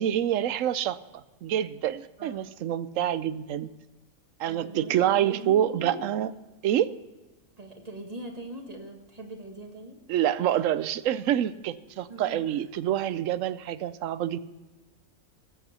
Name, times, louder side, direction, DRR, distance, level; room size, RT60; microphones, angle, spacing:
voice 1, 0.0-3.7 4.4-6.3 6.6-6.9 10.1-14.4, right 11 dB, 70° right, 15 dB, 1.0 m, -27 dB
voice 2, 4.5-6.0 7.6-10.0 12.1-12.6, right 1 dB, 25° right, 3 dB, 1.9 m, -41 dB
21.0 x 8.3 x 4.3 m, 1.1 s
omnidirectional pair, 1.5 m